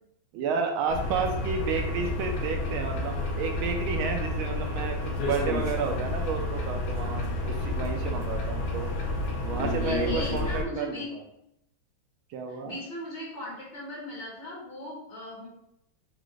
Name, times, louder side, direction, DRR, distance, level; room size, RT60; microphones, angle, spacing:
voice 1, 0.3-8.9 9.4-11.0 12.3-12.8, right 5 dB, 75° right, 4 dB, 1.4 m, -31 dB
sound 1, 0.9-10.6, left 2 dB, 85° left, 1.7 m, -30 dB
voice 2, 9.7-11.1 12.5-15.5, left 1 dB, 60° left, -6 dB, 1.7 m, -38 dB
4.8 x 2.5 x 3.1 m, 0.78 s
omnidirectional pair, 2.4 m